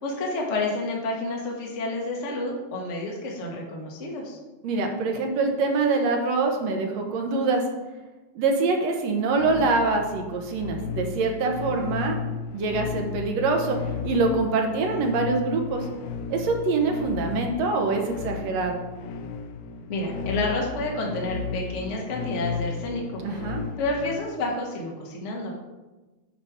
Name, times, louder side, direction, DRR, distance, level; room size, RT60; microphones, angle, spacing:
voice 1, 0.0-4.4 19.9-23.2 23.8-25.5, left 2 dB, 35° left, -1 dB, 1.2 m, -29 dB
voice 2, 4.6-7.6 8.4-12.2 12.5-13.8 14.0-15.9 16.3-18.8 23.2-23.6, right 3 dB, 65° right, 3 dB, 2.1 m, -24 dB
sound 1, 9.4-24.2, left 5 dB, 85° left, 2.1 m, -34 dB
8.4 x 5.2 x 5.0 m, 1.1 s
omnidirectional pair, 3.4 m